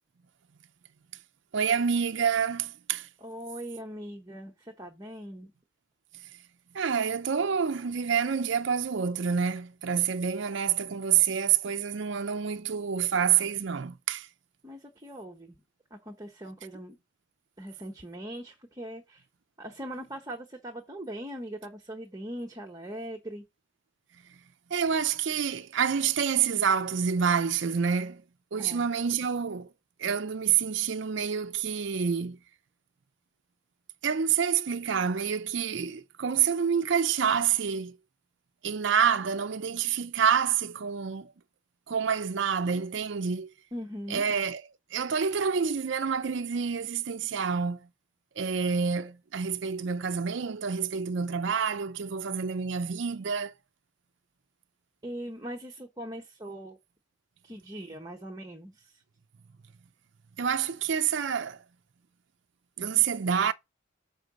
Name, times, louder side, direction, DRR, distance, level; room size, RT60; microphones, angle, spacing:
voice 1, 1.5-3.1 6.7-14.3 24.7-28.2 28.5-29.7 30.0-32.4 34.0-38.0 38.6-41.3 41.9-43.5 44.1-44.6 44.9-47.9 48.4-53.5 60.4-61.6 62.8-63.5, right 7 dB, 60° right, 0.5 m, -27 dB
voice 2, 3.2-5.5 14.6-15.6 15.9-17.0 17.6-19.3 19.6-23.4 28.6-28.9 43.7-44.2 55.0-56.8 57.4-59.0, equal, 20° right, 1.1 m, -40 dB
6.4 x 4.7 x 6.1 m
head